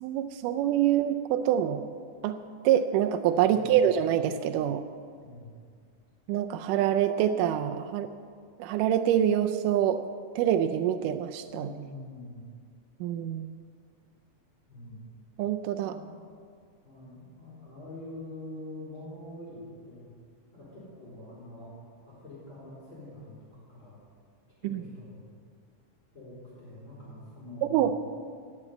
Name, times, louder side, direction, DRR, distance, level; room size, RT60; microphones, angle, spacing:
voice 1, 0.0-1.9 2.2-2.4 2.6-4.8 6.3-8.1 8.6-10.0 10.4-11.7 13.0-13.5 15.4-16.0 24.6-24.8 27.7-27.9, right 10 dB, 90° right, 8 dB, 2.2 m, -25 dB
voice 2, 3.4-3.8 5.2-5.5 11.5-12.4 14.7-15.1 15.8-16.1 16.8-20.1 20.5-24.0 24.6-25.2 26.1-27.9, left 1 dB, 35° left, -7 dB, 4.3 m, -45 dB
18.0 x 7.1 x 8.0 m, 2.1 s
omnidirectional pair, 3.6 m